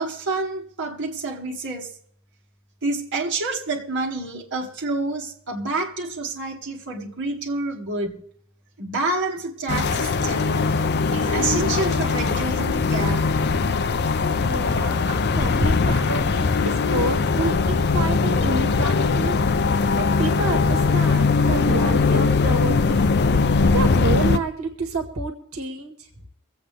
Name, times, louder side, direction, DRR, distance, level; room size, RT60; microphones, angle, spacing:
voice 1, 0.0-1.9 2.8-8.2 8.8-10.7 11.1-13.3, right 3 dB, 60° right, 2.2 m, -28 dB
sound 1, 9.7-24.4, left 4 dB, 50° left, 0.6 m, -20 dB
voice 2, 14.4-19.3 20.0-23.1 23.7-25.9, right 2 dB, 85° right, 1.8 m, -28 dB
24.5 x 8.1 x 3.4 m
head